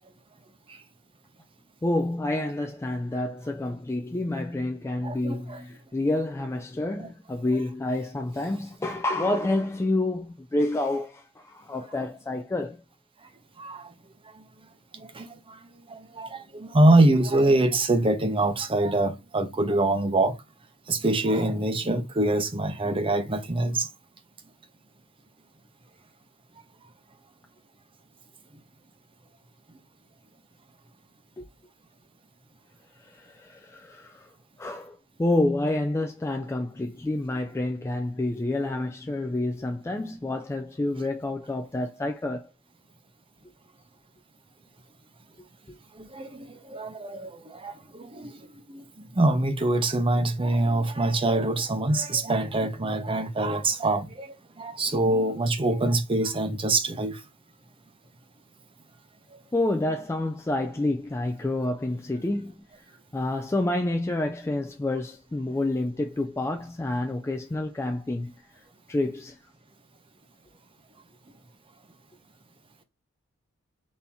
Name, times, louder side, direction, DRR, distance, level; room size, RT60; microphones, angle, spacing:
voice 1, 1.8-12.8 31.4-31.5 33.0-34.3 34.6-42.5 45.7-45.8 59.5-62.6 63.1-68.3 68.9-69.4, left 2 dB, 10° left, 0.3 m, -28 dB
voice 2, 5.0-5.6 7.0-7.1 13.6-13.8 15.2-15.3 15.9-20.3 20.9-23.9 46.0-47.3 47.6-47.7 48.2-48.3 48.7-48.8 49.2-54.3 54.6-57.2, right 2 dB, 25° right, 0.7 m, -24 dB
4.2 x 2.8 x 3.5 m
head